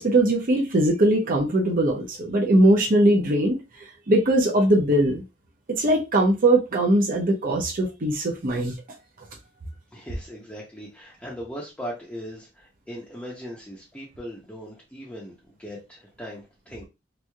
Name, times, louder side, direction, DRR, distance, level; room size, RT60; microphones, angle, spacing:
voice 1, 0.0-3.6 4.1-5.2 5.7-8.8, right 1 dB, 50° right, 0.7 m, -20 dB
voice 2, 9.9-16.8, equal, 5° left, 0.7 m, -39 dB
3.1 x 2.6 x 2.3 m
head